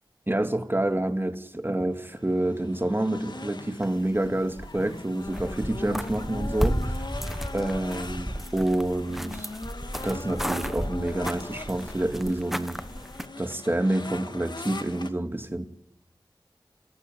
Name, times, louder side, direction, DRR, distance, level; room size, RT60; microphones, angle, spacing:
voice 1, 0.3-6.9 7.5-9.5 10.0-12.8 13.4-15.7, right 1 dB, 25° right, 2.4 m, -28 dB
sound 1, 1.9-15.1, left 2 dB, 60° left, 2.1 m, -40 dB
sound 2, 3.8-5.0 5.2-13.3, equal, 5° right, 1.4 m, -33 dB
27.5 x 15.0 x 9.3 m
wide cardioid pair, 65°, 8 cm